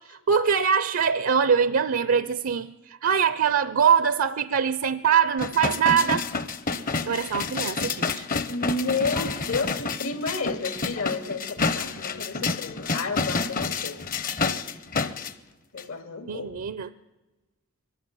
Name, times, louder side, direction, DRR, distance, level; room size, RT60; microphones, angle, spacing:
voice 1, 0.0-6.2 7.1-8.2 16.3-16.9, right 7 dB, 70° right, 14 dB, 0.6 m, -23 dB
sound 1, 5.4-15.3 15.8-15.9, left 4 dB, 40° left, 0.8 m, -29 dB
voice 2, 8.5-14.0 15.7-16.5, left 3 dB, 75° left, 8 dB, 2.4 m, -31 dB
23.5 x 13.0 x 9.6 m, 1.1 s
head